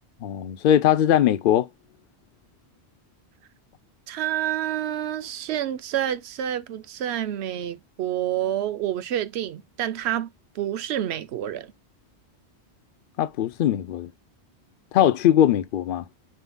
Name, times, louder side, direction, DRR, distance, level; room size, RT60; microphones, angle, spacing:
voice 1, 0.2-1.7 13.2-14.1 14.9-16.0, left 11 dB, 60° left, 0.7 m, -20 dB
voice 2, 4.1-10.3 10.5-11.7, right 11 dB, 80° right, 0.8 m, -28 dB
4.2 x 3.7 x 2.2 m
omnidirectional pair, 1.1 m